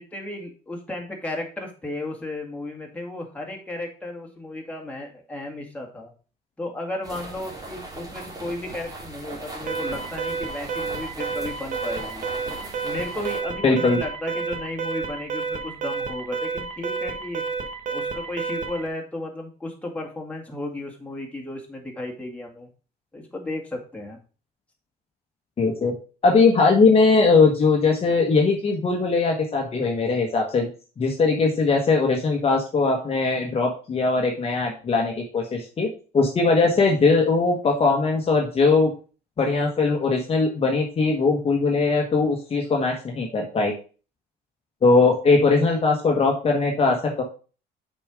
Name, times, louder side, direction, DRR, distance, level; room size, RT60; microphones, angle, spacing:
voice 1, 0.0-6.1 6.6-12.3 12.8-17.4 17.9-22.7 23.1-24.2, left 1 dB, 10° left, 0 dB, 2.1 m, -34 dB
sound 1, 7.0-13.4, right 2 dB, 20° right, 2.4 m, -39 dB
Alarm, 9.7-18.9, right 5 dB, 50° right, 1.4 m, -30 dB
voice 2, 13.6-14.0 25.6-25.9 26.2-30.7 31.0-38.9 39.4-43.7 44.8-47.2, left 4 dB, 35° left, 0 dB, 1.4 m, -20 dB
7.0 x 4.5 x 4.9 m, 0.36 s
cardioid pair, 110°, 17 cm